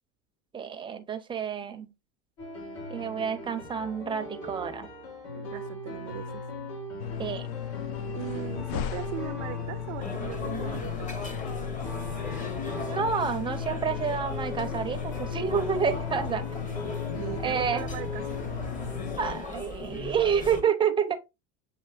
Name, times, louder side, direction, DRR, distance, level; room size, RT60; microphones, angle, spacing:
voice 1, 0.5-1.9 2.9-4.9 7.2-7.5 12.9-16.5 17.4-17.8 19.2-21.2, right 7 dB, 15° right, 0.5 m, -29 dB
sound 1, 2.4-19.3, left 1 dB, 75° left, 2.4 m, -40 dB
voice 2, 5.3-6.4 8.1-11.2 17.1-18.4 20.7-21.2, right 16 dB, 85° right, 0.5 m, -40 dB
sound 2, 7.0-19.2, left 9 dB, 50° left, 0.5 m, -36 dB
sound 3, 10.0-20.6, left 3 dB, 20° left, 0.8 m, -38 dB
6.8 x 3.0 x 2.4 m
supercardioid pair, 130°, 36 cm